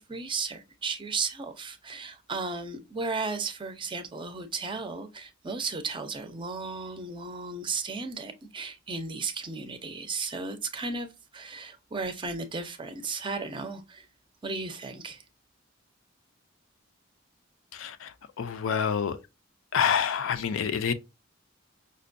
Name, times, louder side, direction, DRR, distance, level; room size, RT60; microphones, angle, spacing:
voice 1, 0.0-14.1 14.4-15.2, right 4 dB, 25° right, 0.5 m, -35 dB
voice 2, 17.7-19.2 19.7-20.9, left 7 dB, 75° left, 0.4 m, -27 dB
5.1 x 2.2 x 2.5 m
head